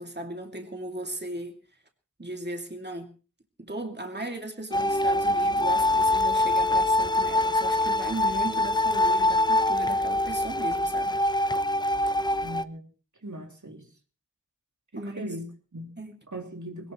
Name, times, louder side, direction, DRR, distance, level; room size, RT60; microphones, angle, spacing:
voice 1, 0.0-1.6 2.2-3.1 3.6-11.2 14.9-15.2 16.0-16.1, right 1 dB, 35° right, 2.5 m, -36 dB
sound 1, 4.7-12.6, left 1 dB, 15° left, 0.8 m, -24 dB
voice 2, 12.4-12.8 13.2-13.9 14.9-16.0 16.3-16.9, equal, 65° right, 2.8 m, -39 dB
21.5 x 19.0 x 3.1 m
wide cardioid pair, 45°, 31 cm